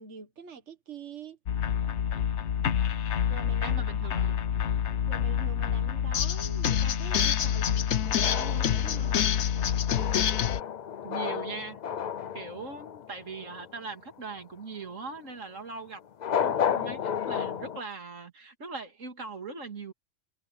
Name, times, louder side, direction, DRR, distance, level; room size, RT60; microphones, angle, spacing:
voice 1, 0.0-1.4 3.3-4.3 5.1-9.4, right 5 dB, 65° right, 1.9 m, -45 dB
sound 1, 1.5-10.6, left 9 dB, 65° left, 1.1 m, -27 dB
voice 2, 3.6-4.5 11.0-11.8 12.3-16.0 16.4-19.9, right 4 dB, 85° right, 2.7 m, -40 dB
sound 2, 8.0-13.8 16.1-17.8, left 8 dB, 50° left, 0.5 m, -33 dB
omnidirectional pair, 1.3 m